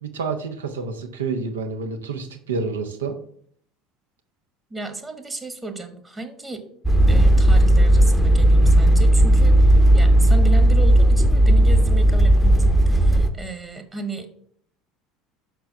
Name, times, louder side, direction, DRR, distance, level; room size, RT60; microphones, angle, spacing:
voice 1, 0.0-3.1, right 4 dB, 70° right, 5 dB, 1.0 m, -28 dB
voice 2, 4.7-6.6 7.1-14.3, right 3 dB, 15° right, 7 dB, 1.2 m, -34 dB
sound 1, 6.8-13.3, right 1 dB, ahead, 0.8 m, -15 dB
6.1 x 4.6 x 5.6 m, 0.62 s
figure-of-eight pair, 65°, 0 cm